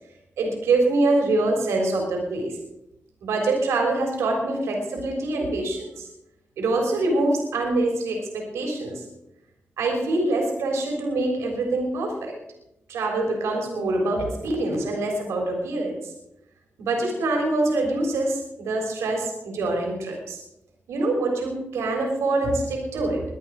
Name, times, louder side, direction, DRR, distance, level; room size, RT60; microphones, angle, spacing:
voice 1, 0.4-2.6 3.2-6.1 6.6-9.1 9.8-12.3 12.9-16.1 16.8-20.4 20.9-23.2, right 2 dB, 90° right, 1 dB, 3.7 m, -25 dB
22.5 x 8.7 x 4.8 m, 0.87 s
supercardioid pair, 45°, 5 cm